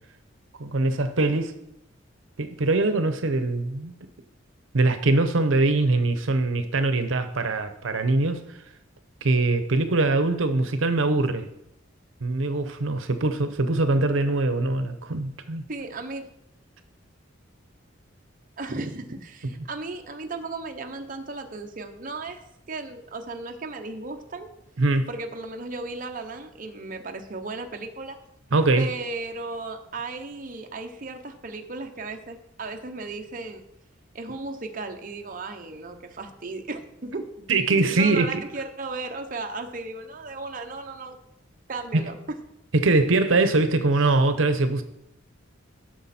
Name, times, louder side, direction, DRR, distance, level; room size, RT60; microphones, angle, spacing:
voice 1, 0.6-1.5 2.4-3.9 4.7-8.4 9.2-11.5 12.2-15.6 24.8-25.1 28.5-28.9 37.5-38.4 41.9-42.0 42.7-44.8, right 2 dB, 80° right, 9 dB, 0.8 m, -22 dB
voice 2, 15.7-16.3 18.6-22.4 22.7-24.5 25.1-28.2 28.8-33.7 34.1-37.5 37.7-41.2 41.7-42.2, right 3 dB, 45° right, 5 dB, 0.8 m, -35 dB
12.5 x 6.1 x 4.3 m, 0.82 s
head